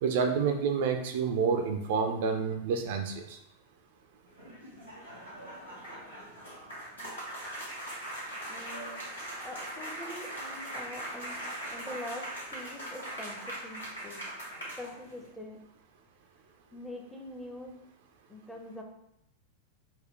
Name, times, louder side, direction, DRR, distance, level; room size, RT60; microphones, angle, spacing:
voice 1, 0.0-3.4, right 5 dB, 55° right, 4 dB, 0.3 m, -28 dB
sound 1, 4.3-15.3, right 1 dB, 75° left, 1.2 m, -41 dB
voice 2, 8.5-9.0 9.4-11.4 11.7-14.2 14.6-15.6 16.7-17.8 18.3-18.8, left 1 dB, 5° left, 1 dB, 0.5 m, -44 dB
4.1 x 2.1 x 3.0 m, 0.78 s
figure-of-eight pair, 90°, 0 cm